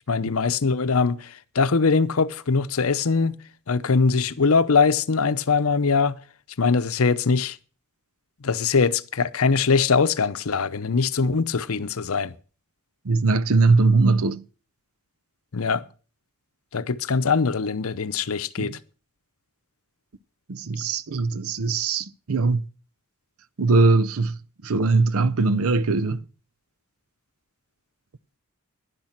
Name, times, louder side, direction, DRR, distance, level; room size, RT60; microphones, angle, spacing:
voice 1, 0.1-3.4 3.7-6.2 6.6-7.6 8.4-12.3 15.5-15.8 16.7-18.8, left 4 dB, 70° left, 0.7 m, -22 dB
voice 2, 13.0-14.4 18.6-18.8 20.5-22.7 23.6-26.2, right 3 dB, 70° right, 0.6 m, -21 dB
11.0 x 10.5 x 5.8 m
head